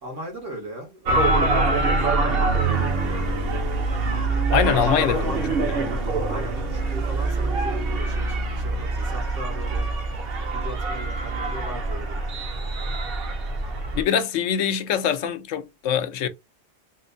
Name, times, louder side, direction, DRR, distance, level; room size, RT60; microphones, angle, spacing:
voice 1, 0.0-2.2 3.0-3.9 4.6-5.5 6.3-9.9 10.5-12.3, equal, 80° right, 1.8 m, -37 dB
sound 1, 1.1-14.0, right 2 dB, 55° right, 0.9 m, -24 dB
voice 2, 4.5-6.0 13.9-16.3, left 8 dB, 80° left, 0.9 m, -24 dB
4.2 x 2.1 x 2.6 m
omnidirectional pair, 1.3 m